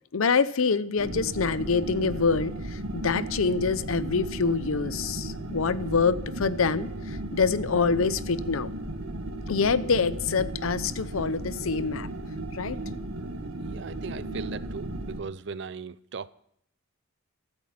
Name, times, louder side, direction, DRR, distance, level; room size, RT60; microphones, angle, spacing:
voice 1, 0.1-8.7 9.5-12.1 12.5-12.8, left 5 dB, 75° left, 0.7 m, -26 dB
sound 1, 1.0-15.2, right 1 dB, 80° right, 1.8 m, -35 dB
voice 2, 13.7-16.3, right 5 dB, 55° right, 0.5 m, -38 dB
16.0 x 13.5 x 4.3 m
head